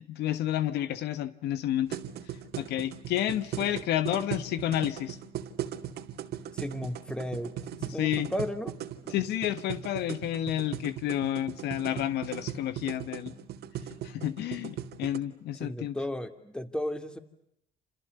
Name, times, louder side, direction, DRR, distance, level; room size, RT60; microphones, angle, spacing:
voice 1, 0.0-2.0 2.6-5.2 8.0-8.3 9.1-13.3 14.0-16.0, left 12 dB, 80° left, 1.4 m, -30 dB
sound 1, 1.9-15.2, right 10 dB, 75° right, 2.4 m, -38 dB
voice 2, 6.5-8.7 9.0-9.2 15.6-17.2, left 1 dB, 5° left, 2.8 m, -34 dB
30.0 x 28.0 x 6.7 m
cardioid pair, 110°, 17 cm